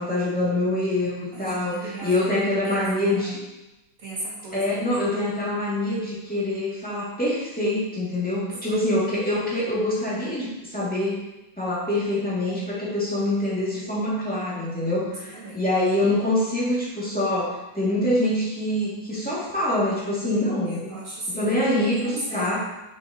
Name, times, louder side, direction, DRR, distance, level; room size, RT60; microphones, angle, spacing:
voice 1, 0.0-3.4 4.5-11.2 11.6-20.8 21.3-22.6, left 1 dB, 5° left, -9 dB, 1.9 m, -25 dB
voice 2, 1.3-3.4 4.0-4.9 8.3-8.7 15.0-15.6 20.6-21.5 21.8-22.6, right 1 dB, 45° right, -6 dB, 2.3 m, -37 dB
6.3 x 6.1 x 2.9 m, 1.0 s
omnidirectional pair, 2.1 m